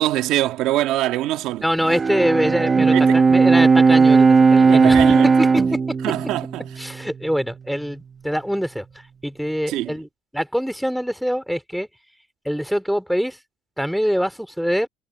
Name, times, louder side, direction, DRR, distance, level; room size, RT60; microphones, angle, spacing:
voice 1, 0.0-1.6 2.9-3.2 4.6-5.3 6.0-6.8 9.7-10.0, right 15 dB, 70° right, 1.6 m, -23 dB
voice 2, 1.6-5.0 5.4-5.6 6.8-8.8 9.2-10.1 10.3-11.9 12.4-13.4 13.8-14.9, equal, ahead, 3.2 m, -24 dB
Bowed string instrument, 1.8-7.3, right 4 dB, 25° right, 1.0 m, -16 dB
cardioid pair, 145°, 0 cm